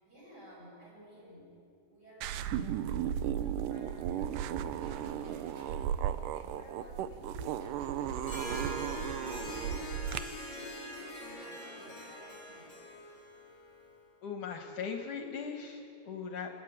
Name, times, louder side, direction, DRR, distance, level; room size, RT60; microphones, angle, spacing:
voice 1, 0.0-8.8 9.1-13.0, equal, 25° right, -5 dB, 7.8 m, -54 dB
sound 1, 2.2-10.2, right 10 dB, 85° right, 1.8 m, -35 dB
sound 2, 4.7-5.9 7.6-9.2 11.3-11.8, right 1 dB, 50° right, 6.3 m, -56 dB
Harp, 8.2-13.9, left 1 dB, 25° left, 3.7 m, -43 dB
voice 2, 14.2-16.6, left 6 dB, 65° left, 3 dB, 2.4 m, -39 dB
28.5 x 11.0 x 8.8 m, 2.5 s
omnidirectional pair, 4.5 m